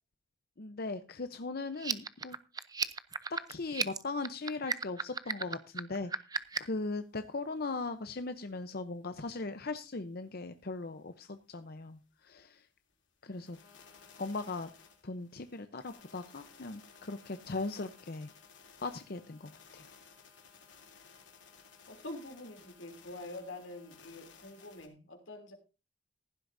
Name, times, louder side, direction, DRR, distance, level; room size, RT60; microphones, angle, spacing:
voice 1, 0.6-2.4 3.5-6.1 6.6-12.6 13.2-13.6 14.2-14.7 15.0-18.3 18.8-19.8, left 3 dB, 55° left, 9 dB, 0.8 m, -39 dB
sound 1, 1.7-6.8, right 5 dB, 20° right, 0.6 m, -35 dB
sound 2, 6.4-6.5 6.8-6.9 7.3-7.4 7.8-7.9 8.3-8.9 9.3-9.4 9.8-9.9 10.3-10.4 10.8-10.9 11.4-11.5 11.9-12.0 12.3-12.4 12.9-13.0 13.3-24.9, left 5 dB, 70° left, 3.1 m, -58 dB
voice 2, 21.9-25.5, left 2 dB, 85° left, 5 dB, 3.1 m, -46 dB
16.0 x 11.5 x 2.7 m, 0.31 s
head